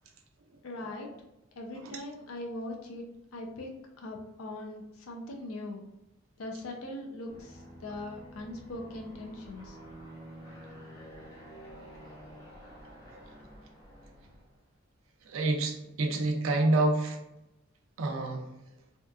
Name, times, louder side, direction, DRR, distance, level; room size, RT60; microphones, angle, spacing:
voice 1, 0.6-1.1 1.6-3.0 3.3-5.9 6.4-9.8, left 1 dB, 85° left, 1 dB, 0.5 m, -41 dB
Aircraft, 7.3-14.6, equal, 20° left, 0.8 m, -49 dB
voice 2, 15.3-17.2 18.0-18.5, right 2 dB, 75° right, 3 dB, 0.5 m, -28 dB
2.8 x 2.3 x 2.3 m, 0.92 s
head